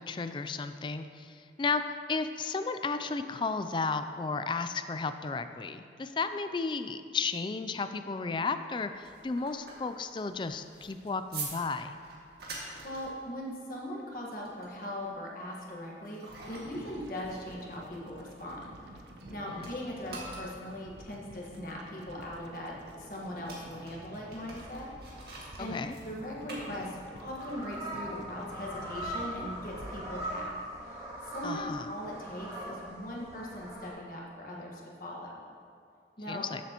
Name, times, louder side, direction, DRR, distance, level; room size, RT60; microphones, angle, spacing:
voice 1, 0.0-11.9 19.5-19.7 25.6-26.0 31.4-31.9 36.3-36.6, left 4 dB, 25° left, 10 dB, 0.3 m, -33 dB
sound 1, 8.8-19.3 19.6-27.3, right 3 dB, 60° right, 1.9 m, -47 dB
voice 2, 12.8-24.9 25.4-30.6 30.9-35.4 36.2-36.5, left 1 dB, 50° left, -3 dB, 1.5 m, -40 dB
sound 2, 16.3-30.4, right 1 dB, 75° right, 0.9 m, -50 dB
sound 3, 27.0-33.9, right 1 dB, 20° right, 1.8 m, -40 dB
13.5 x 7.4 x 3.0 m, 2.3 s
head